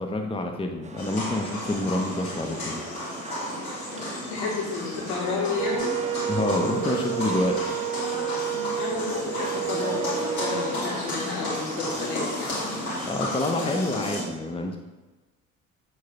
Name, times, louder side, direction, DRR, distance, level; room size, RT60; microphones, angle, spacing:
voice 1, 0.0-2.8 6.3-7.6 13.0-14.8, left 2 dB, 15° left, 4 dB, 0.9 m, -27 dB
sound 1, 0.8-13.8, right 3 dB, 15° right, 0.8 m, -42 dB
sound 2, 1.0-14.2, left 1 dB, 85° left, 2.6 m, -32 dB
voice 2, 4.3-5.9 8.6-12.6, left 3 dB, 70° left, -3 dB, 2.6 m, -31 dB
Wind instrument woodwind instrument, 5.6-10.8, right 12 dB, 45° right, 0.4 m, -31 dB
7.7 x 4.1 x 5.9 m, 1.2 s
figure-of-eight pair, 50°, 42 cm